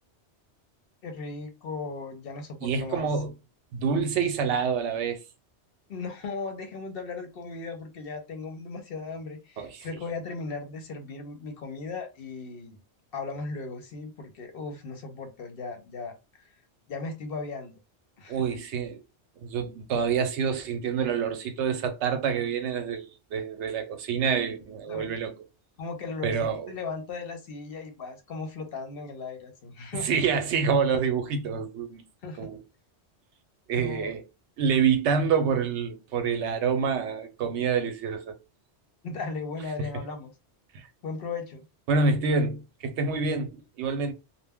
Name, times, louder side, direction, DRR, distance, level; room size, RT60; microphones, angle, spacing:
voice 1, 1.0-3.1 5.9-12.8 13.1-16.5 16.9-17.8 18.2-18.4 24.9-25.1 25.8-30.2 32.2-32.5 33.7-34.1 39.0-40.3 41.0-41.6, left 4 dB, 60° left, 0.8 m, -37 dB
voice 2, 2.6-3.3 3.7-5.2 9.6-9.9 18.3-19.0 19.4-25.3 26.2-26.7 29.9-32.0 32.4-32.6 33.7-34.2 34.6-38.4 39.8-39.9 40.7-40.9 41.9-44.1, right 5 dB, 80° right, 0.9 m, -27 dB
2.1 x 2.1 x 3.4 m
omnidirectional pair, 1.2 m